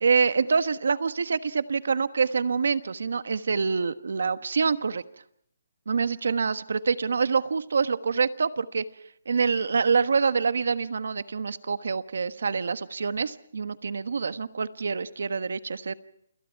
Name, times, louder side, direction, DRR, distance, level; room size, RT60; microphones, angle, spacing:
voice 1, 0.0-5.0 5.9-8.8 9.3-15.9, right 5 dB, 70° right, 12 dB, 1.3 m, -26 dB
29.0 x 26.5 x 4.7 m, 0.70 s
hypercardioid pair, 175°, 0 cm